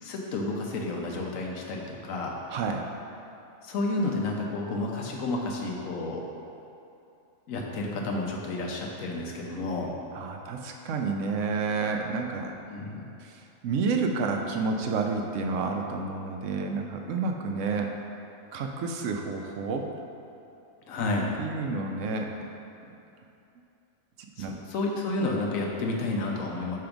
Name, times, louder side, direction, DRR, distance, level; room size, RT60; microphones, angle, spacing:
voice 1, 0.0-2.4 3.6-6.2 7.5-9.9 12.7-13.0 20.9-21.3 24.4-26.8, left 2 dB, 90° left, -1 dB, 1.2 m, -31 dB
voice 2, 2.5-2.9 10.1-12.5 13.2-17.9 18.5-19.9 21.4-22.4 22.8-22.9 24.4-24.6 25.7-25.8, right 4 dB, 70° right, 3 dB, 0.9 m, -30 dB
5.8 x 3.4 x 5.1 m, 2.8 s
omnidirectional pair, 1.4 m